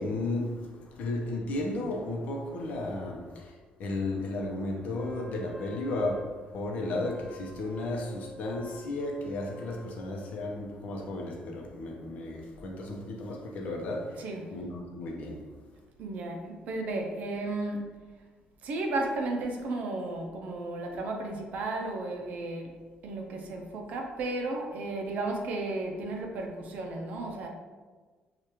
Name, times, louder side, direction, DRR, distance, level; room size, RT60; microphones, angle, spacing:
voice 1, 0.0-3.5 3.8-14.2 14.5-15.4, left 2 dB, 60° left, 0.7 m, -34 dB
Wind instrument woodwind instrument, 4.9-10.5, left 1 dB, 15° left, 0.4 m, -49 dB
voice 2, 14.2-14.5 16.0-17.9 18.6-27.5, right 2 dB, 60° right, 0.6 m, -34 dB
4.7 x 2.4 x 2.9 m
cardioid pair, 170°, 3 cm